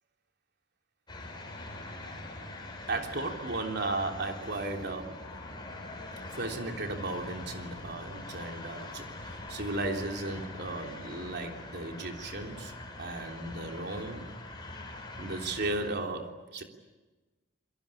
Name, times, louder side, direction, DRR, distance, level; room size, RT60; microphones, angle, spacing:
sound 1, 1.1-16.0, left 2 dB, 25° left, 6.1 m, -43 dB
voice 1, 2.9-5.3 6.3-14.3 15.2-16.6, right 2 dB, 60° right, 3 dB, 3.4 m, -35 dB
28.5 x 22.5 x 8.6 m, 1.2 s
head